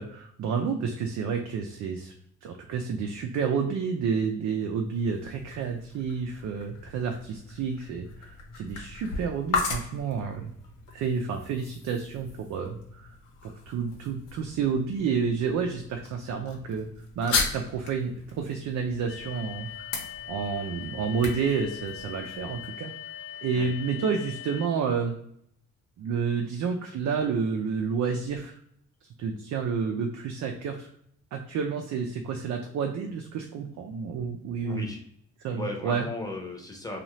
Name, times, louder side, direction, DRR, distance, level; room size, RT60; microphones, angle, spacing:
voice 1, 0.0-2.1 2.4-10.5 10.9-13.2 13.4-16.9 17.2-20.0 20.3-22.9 23.4-25.1 26.0-28.6 29.2-30.9 31.3-34.9 35.4-36.1, right 6 dB, 70° right, 3 dB, 0.5 m, -30 dB
sound 1, 4.9-22.7, left 4 dB, 85° left, 0.9 m, -37 dB
sound 2, 19.1-24.7, left 11 dB, 45° left, 0.8 m, -41 dB
voice 2, 34.5-35.0 35.5-37.0, left 2 dB, 10° left, -1 dB, 0.8 m, -36 dB
2.7 x 2.4 x 3.1 m, 0.70 s
cardioid pair, 90°, 30 cm